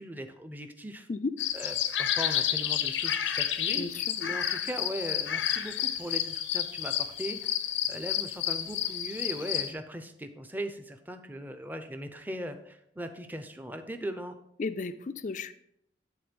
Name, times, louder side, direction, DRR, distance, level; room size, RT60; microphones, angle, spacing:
voice 1, 0.0-1.1 1.5-7.5 7.9-14.3, equal, 10° right, 7 dB, 0.6 m, -39 dB
sound 1, 1.4-9.7, left 10 dB, 90° left, 0.8 m, -30 dB
voice 2, 3.7-4.4 14.6-15.5, left 3 dB, 45° left, 11 dB, 0.4 m, -34 dB
11.0 x 4.0 x 5.2 m, 0.75 s
head